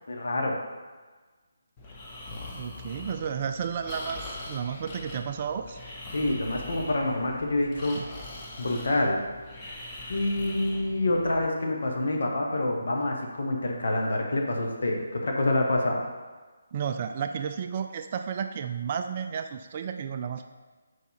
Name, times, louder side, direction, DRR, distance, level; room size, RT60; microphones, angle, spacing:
voice 1, 0.1-0.6 6.1-8.0 8.6-9.2 10.1-16.0, left 2 dB, 55° left, 1 dB, 1.1 m, -27 dB
Breathing, 1.8-11.5, left 2 dB, 20° left, 1.0 m, -42 dB
voice 2, 2.5-5.8 7.9-8.1 16.7-20.5, right 7 dB, 35° right, 7 dB, 0.3 m, -32 dB
6.9 x 4.8 x 4.1 m, 1.3 s
figure-of-eight pair, 145°, 0 cm